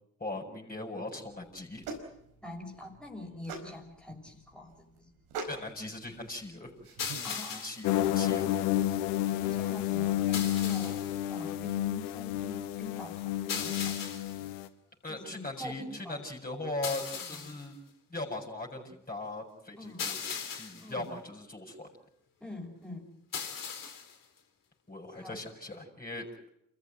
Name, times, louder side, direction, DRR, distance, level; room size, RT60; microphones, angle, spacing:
voice 1, 0.2-1.9 5.5-6.7 7.5-8.7 15.0-17.8 18.1-21.9 24.9-26.3, left 2 dB, 25° left, 0 dB, 7.4 m, -39 dB
sound 1, 1.2-7.3, right 3 dB, 75° right, 4.7 m, -45 dB
voice 2, 2.4-5.1 7.2-8.0 9.4-14.1 15.1-16.2 17.1-17.5 19.8-20.1 20.8-21.1 22.4-23.1 25.1-25.4, left 1 dB, ahead, 0 dB, 6.3 m, -45 dB
sound 2, 7.0-7.9 10.3-11.2 13.5-14.4 16.8-17.7 20.0-20.9 23.3-24.2, left 7 dB, 60° left, 3.8 m, -38 dB
sound 3, 7.8-14.7, left 13 dB, 80° left, 1.0 m, -30 dB
28.5 x 15.0 x 9.3 m, 0.77 s
hypercardioid pair, 50°, 37 cm